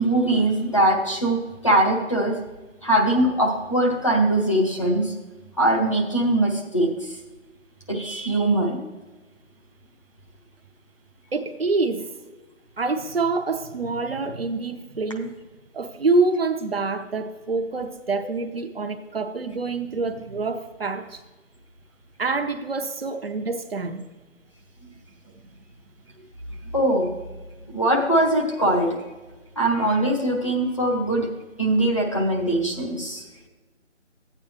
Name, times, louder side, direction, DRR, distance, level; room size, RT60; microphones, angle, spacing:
voice 1, 0.0-2.3 2.8-5.1 5.6-7.1 7.9-8.8 24.8-24.9 26.7-27.1 27.7-29.0 29.6-31.3 31.6-33.2, right 1 dB, 25° left, -1 dB, 0.8 m, -21 dB
voice 2, 11.3-12.1 12.8-15.3 15.7-21.2 22.2-24.0, right 3 dB, 50° right, 6 dB, 0.8 m, -26 dB
12.5 x 8.7 x 3.1 m, 1.2 s
figure-of-eight pair, 175°, 37 cm